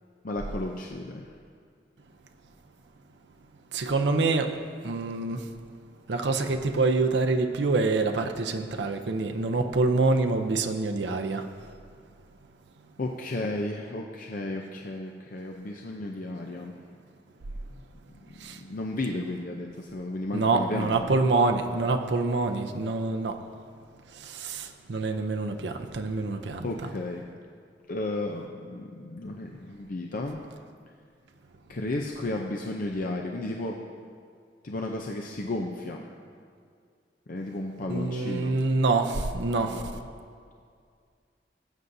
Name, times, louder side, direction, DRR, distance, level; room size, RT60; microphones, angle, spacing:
voice 1, 0.2-1.3 13.0-16.7 18.3-21.1 26.6-27.2 27.9-30.4 31.7-33.8 34.6-36.1 37.3-38.5 39.7-40.1, left 2 dB, 50° left, 1 dB, 0.6 m, -33 dB
voice 2, 3.7-4.6 4.8-5.5 6.1-11.5 18.4-18.6 20.3-23.4 24.2-26.7 37.9-39.8, right 3 dB, 75° right, 5 dB, 0.6 m, -26 dB
18.5 x 8.0 x 2.7 m, 2.2 s
head